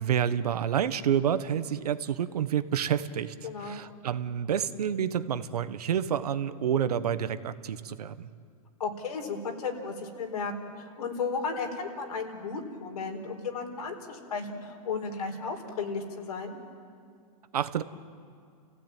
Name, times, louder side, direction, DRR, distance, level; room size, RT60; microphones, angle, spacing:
voice 1, 0.0-3.3 3.6-8.3 17.5-17.8, right 9 dB, 90° right, 12 dB, 1.2 m, -28 dB
voice 2, 3.4-3.8 8.8-16.6, left 4 dB, 90° left, 3 dB, 4.4 m, -34 dB
29.5 x 16.0 x 9.1 m, 2.2 s
hypercardioid pair, 150°, 19 cm